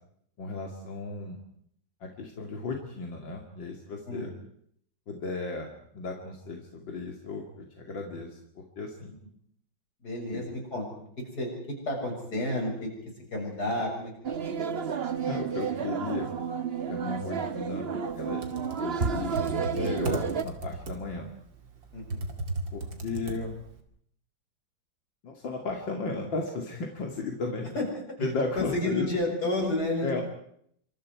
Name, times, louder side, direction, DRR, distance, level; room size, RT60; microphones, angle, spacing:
voice 1, 0.4-1.4 2.0-4.3 5.1-9.1 10.3-10.4 15.2-16.3 16.9-17.8 18.1-18.4 18.8-19.3 19.7-21.3 22.7-23.6 25.2-27.7 28.2-29.1 30.0-30.2, left 3 dB, 90° left, 2 dB, 3.1 m, -35 dB
voice 2, 10.0-10.9 11.2-12.9 13.3-14.4 21.9-22.2 27.7-28.3 28.6-30.2, left 1 dB, 55° left, 0 dB, 7.5 m, -31 dB
sound 1, 14.2-20.4, right 6 dB, 40° right, 1.2 m, -31 dB
Computer keyboard, 18.2-23.8, right 2 dB, 85° right, 3.2 m, -36 dB
27.5 x 25.5 x 4.8 m, 0.67 s
omnidirectional pair, 2.0 m